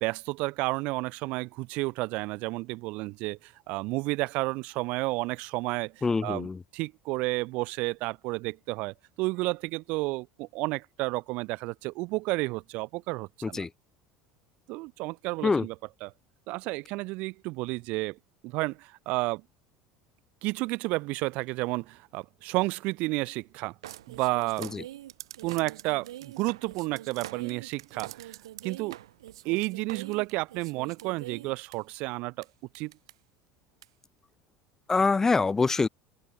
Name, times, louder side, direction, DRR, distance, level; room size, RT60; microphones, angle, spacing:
voice 1, 0.0-6.5 6.7-13.7 14.7-15.7 16.0-16.1 16.5-18.2 18.4-19.4 20.4-23.7 24.1-24.7 25.4-28.4 28.6-29.0 29.4-32.5 32.8-32.9, right 23 dB, 65° right, 0.4 m, -31 dB
voice 2, 6.0-6.6 13.4-13.7 15.4-15.7 24.6-24.8 34.9-35.9, left 4 dB, 20° left, 0.3 m, -25 dB
sound 1, 23.8-31.8 32.4-32.5 32.7-33.1 33.8-33.9, right 13 dB, 90° right, 1.0 m, -44 dB
open air
hypercardioid pair, 90°, 3 cm